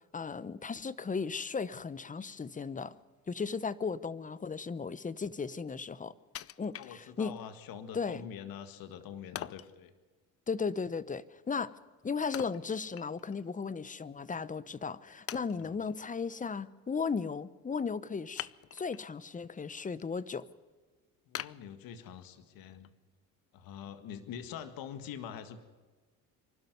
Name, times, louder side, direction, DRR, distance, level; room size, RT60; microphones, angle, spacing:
voice 1, 0.1-2.9 3.3-6.1 6.6-7.3 7.9-8.3 10.5-11.7 12.0-20.5, left 5 dB, 20° left, 18 dB, 0.9 m, -36 dB
Wood, 6.3-7.5 7.9-8.0 9.3-9.8 12.3-13.4 13.8-13.9 14.6-14.7 15.3-15.9 18.3-19.1 19.6-20.0 20.4-20.5 21.3-22.4 22.8-22.9, left 11 dB, 40° left, 0.6 m, -43 dB
voice 2, 6.8-9.9 15.5-15.8 21.3-22.9 23.5-25.6, left 8 dB, 70° left, 10 dB, 1.9 m, -45 dB
25.5 x 12.0 x 9.4 m, 1.3 s
supercardioid pair, 85°, 36 cm